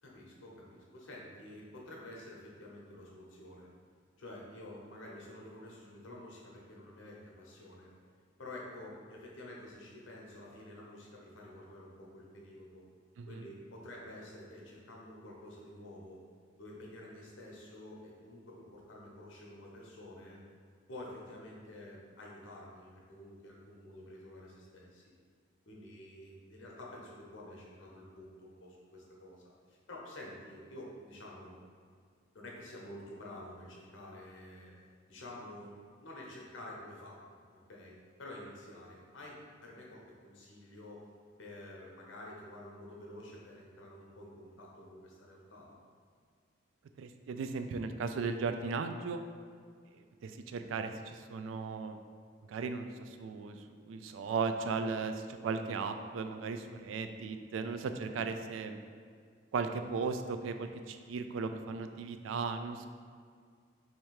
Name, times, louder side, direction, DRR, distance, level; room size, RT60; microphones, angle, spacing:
voice 1, 0.0-3.7 4.2-7.9 8.4-12.8 13.3-16.2 16.6-20.4 20.9-25.0 25.7-31.5 32.3-34.8 35.1-37.4 37.7-41.0 41.4-45.7, left 1 dB, 90° left, -3 dB, 0.9 m, -49 dB
voice 2, 47.0-49.2 50.0-52.0 52.5-58.8 59.5-62.9, right 4 dB, 85° right, 8 dB, 0.3 m, -36 dB
3.3 x 2.9 x 4.7 m, 2.1 s
head